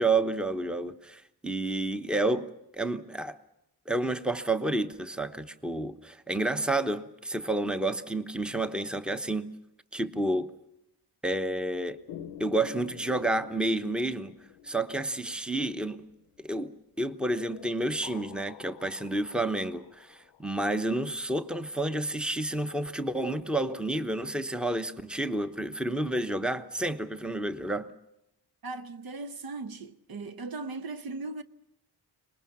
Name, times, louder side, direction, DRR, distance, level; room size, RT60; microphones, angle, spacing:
voice 1, 0.0-3.4 3.9-9.5 9.9-10.5 11.2-12.0 12.4-14.3 14.6-16.0 16.4-16.7 17.0-27.9, right 2 dB, ahead, 1.0 m, -30 dB
sound 1, 12.1-16.3 17.3-21.1, left 10 dB, 85° left, 0.8 m, -48 dB
voice 2, 28.6-31.4, right 3 dB, 60° right, 1.0 m, -38 dB
24.5 x 20.0 x 7.3 m
cardioid pair, 80°, 41 cm